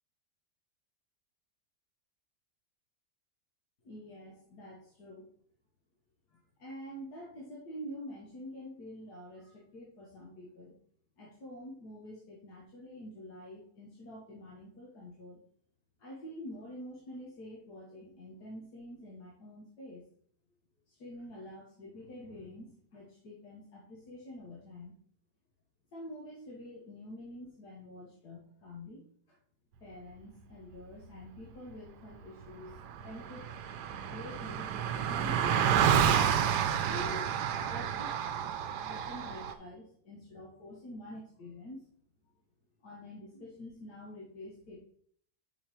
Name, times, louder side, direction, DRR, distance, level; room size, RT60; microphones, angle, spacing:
voice 1, 3.8-5.3 6.3-10.8 11.2-15.4 16.0-20.0 20.9-24.9 25.9-29.4 29.8-32.8 33.0-33.6 34.1-36.0 36.5-37.3 37.7-38.3 38.8-41.8 42.8-44.8, left 1 dB, 75° left, -3 dB, 1.8 m, -47 dB
Car passing by, 32.4-32.5 32.7-39.5, right 8 dB, 80° right, 1.2 m, -30 dB
5.5 x 5.3 x 4.4 m, 0.62 s
omnidirectional pair, 1.8 m